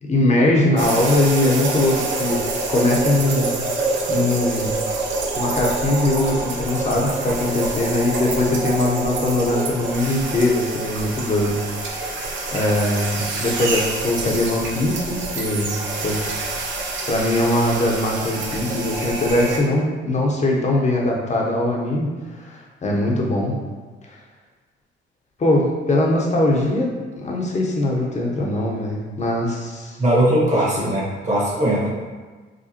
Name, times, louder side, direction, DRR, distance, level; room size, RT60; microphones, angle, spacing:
voice 1, 0.0-3.6 4.1-4.8 5.4-12.1 12.5-15.7 16.0-16.2 17.1-23.6 25.4-30.0 30.8-30.9, left 1 dB, 35° left, -2 dB, 0.8 m, -21 dB
sound 1, 0.8-19.6, right 3 dB, 70° right, 0.7 m, -26 dB
voice 2, 30.0-31.9, right 1 dB, 35° right, -6 dB, 1.4 m, -19 dB
4.9 x 2.2 x 2.9 m, 1.4 s
cardioid pair, 90°, 20 cm